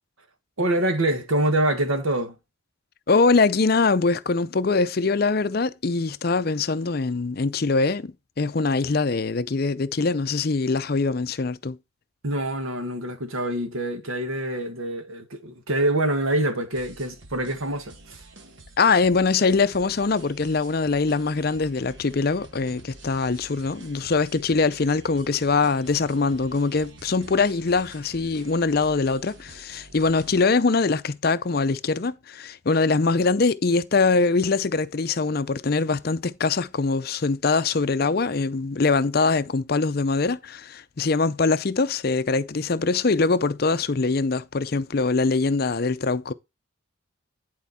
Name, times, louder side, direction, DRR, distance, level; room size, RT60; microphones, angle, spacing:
voice 1, 0.6-2.3 12.2-18.2, right 1 dB, 90° right, 1.5 m, -25 dB
voice 2, 3.1-11.8 18.8-46.3, left 4 dB, 50° left, 0.5 m, -23 dB
sound 1, 16.7-30.5, right 2 dB, 60° right, 1.4 m, -48 dB
10.5 x 4.5 x 4.2 m
head